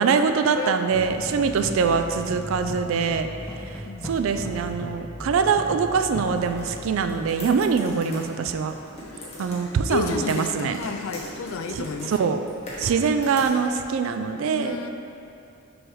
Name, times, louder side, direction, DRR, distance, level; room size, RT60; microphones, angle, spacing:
voice 1, 0.0-3.3 4.0-8.7 9.4-10.8 11.8-12.4 12.8-14.8, right 5 dB, 70° right, 8 dB, 0.3 m, -23 dB
sound 1, 0.9-8.2, equal, 10° left, 0.4 m, -37 dB
sound 2, 6.2-14.1, equal, 30° left, 1.2 m, -41 dB
voice 2, 9.1-12.5 14.5-14.9, left 4 dB, 70° left, 7 dB, 0.4 m, -32 dB
6.1 x 3.2 x 4.7 m, 2.7 s
head